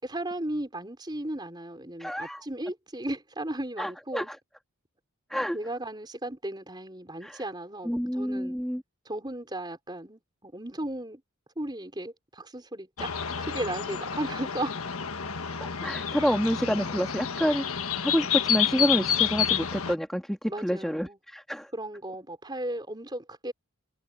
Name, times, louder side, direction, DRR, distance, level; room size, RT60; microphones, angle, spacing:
voice 1, 0.0-4.3 5.5-8.6 9.0-11.2 11.6-13.1 13.4-14.8 16.2-16.3 20.5-21.2 21.7-23.5, right 1 dB, 20° right, 4.7 m, -35 dB
voice 2, 2.0-2.4 3.8-4.4 5.3-5.6 7.2-7.4 7.8-8.8 13.2-13.3 15.6-17.6 18.0-21.7, equal, ahead, 2.2 m, -28 dB
sound 1, 13.0-19.9, left 8 dB, 80° left, 1.5 m, -29 dB
head